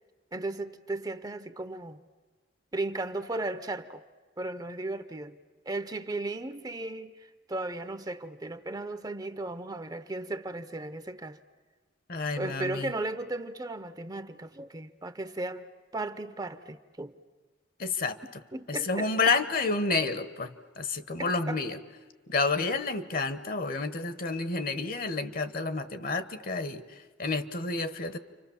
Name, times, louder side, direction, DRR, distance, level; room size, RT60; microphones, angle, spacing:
voice 1, 0.3-2.0 2.7-4.0 4.4-5.4 5.7-11.4 12.4-15.7 15.9-17.1 18.2-19.3 21.2-21.6, right 2 dB, 20° right, 0.7 m, -36 dB
voice 2, 12.1-12.9 17.8-18.2 18.7-21.8 22.3-28.2, left 3 dB, 50° left, 1.2 m, -30 dB
29.5 x 25.5 x 7.1 m
head